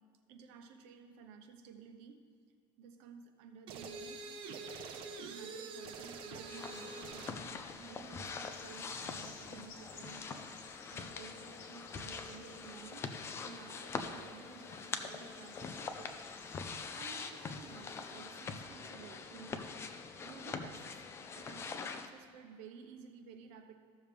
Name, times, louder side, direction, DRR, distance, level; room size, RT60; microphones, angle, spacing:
voice 1, 0.3-2.2 2.8-4.3 5.2-16.2 16.5-20.0 20.2-21.0 21.3-23.7, right 6 dB, 75° right, 6 dB, 1.0 m, -54 dB
sound 1, 3.7-7.4, right 4 dB, 50° right, 0.9 m, -45 dB
sound 2, 6.4-22.1, left 5 dB, 25° left, 0.5 m, -44 dB
sound 3, 6.7-18.4, left 5 dB, 85° left, 1.6 m, -59 dB
14.5 x 6.5 x 3.4 m, 2.1 s
cardioid pair, 155°, 11 cm